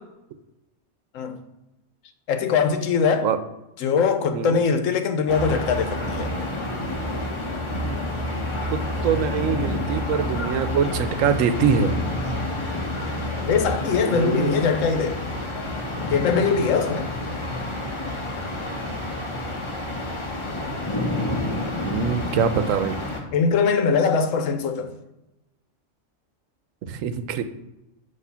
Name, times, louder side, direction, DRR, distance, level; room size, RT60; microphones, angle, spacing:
voice 1, 2.3-3.3 3.8-6.3 12.2-12.4 13.5-15.2 16.1-17.1 23.3-24.9, left 5 dB, 90° left, 1.1 m, -22 dB
voice 2, 4.3-4.6 8.7-11.9 14.0-14.8 21.8-23.0 26.9-27.4, right 7 dB, 90° right, 1.0 m, -24 dB
sound 1, 5.3-23.2, left 1 dB, 25° left, 0.9 m, -29 dB
8.1 x 2.8 x 5.6 m
omnidirectional pair, 1.3 m